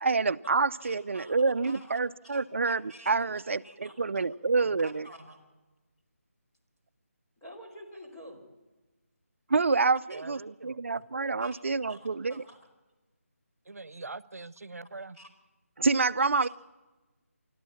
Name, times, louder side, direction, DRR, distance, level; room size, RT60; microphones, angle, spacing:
voice 1, 0.0-5.1 9.5-12.3 15.8-16.5, right 4 dB, 55° right, 14 dB, 0.7 m, -27 dB
voice 2, 0.8-1.4 1.6-3.3 3.6-4.2 4.6-5.4 7.4-8.5 10.1-10.2 10.9-11.0 11.4-11.6 11.9-12.6 15.1-15.3, equal, 10° left, -3 dB, 3.3 m, -50 dB
voice 3, 10.1-10.8 13.7-15.2, right 3 dB, 85° right, 18 dB, 0.9 m, -43 dB
27.0 x 12.5 x 8.6 m, 1.2 s
figure-of-eight pair, 170°, 8 cm